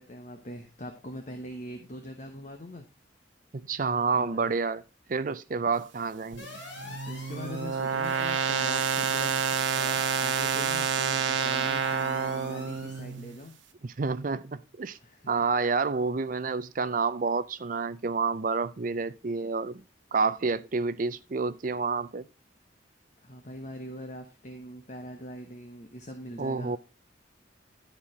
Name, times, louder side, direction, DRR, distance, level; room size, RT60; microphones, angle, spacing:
voice 1, 0.0-2.9 4.1-4.5 6.7-9.4 9.7-13.6 15.0-15.3 23.2-26.8, equal, 40° left, 1.1 m, -42 dB
voice 2, 3.5-4.8 5.1-6.6 13.8-15.0 15.3-19.8 20.1-22.2 26.4-26.8, right 4 dB, 45° right, 0.5 m, -29 dB
sound 1, 6.3-13.5, right 6 dB, 90° right, 0.9 m, -29 dB
sound 2, 6.4-13.0, left 2 dB, 70° left, 3.2 m, -44 dB
11.5 x 4.5 x 4.8 m
head